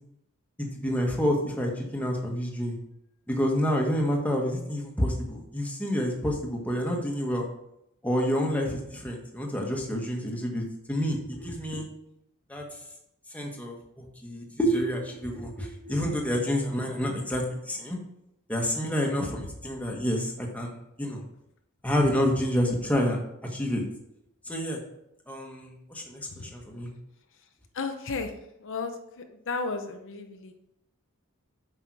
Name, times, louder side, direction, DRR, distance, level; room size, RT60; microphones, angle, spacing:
voice 1, 0.6-2.8 3.3-7.5 8.0-11.9 12.5-12.6 13.3-18.0 18.5-21.2 21.8-23.2 23.5-23.8 24.5-24.8 25.3-26.9, equal, 5° left, 0 dB, 1.4 m, -28 dB
voice 2, 27.7-28.3 28.6-30.5, left 4 dB, 60° left, 5 dB, 0.8 m, -33 dB
8.1 x 5.6 x 4.8 m, 0.81 s
head